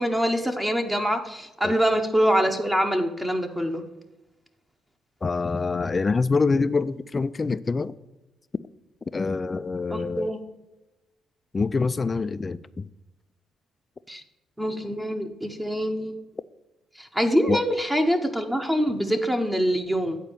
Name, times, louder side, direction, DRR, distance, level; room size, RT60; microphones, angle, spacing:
voice 1, 0.0-3.8 9.9-10.4 14.1-14.2 14.6-16.2 17.0-20.2, equal, 10° right, 0.9 m, -24 dB
voice 2, 5.2-7.9 9.1-10.3 11.5-12.8 17.5-17.6, left 4 dB, 30° left, 0.3 m, -25 dB
9.0 x 4.4 x 6.8 m
cardioid pair, 85°, 0 cm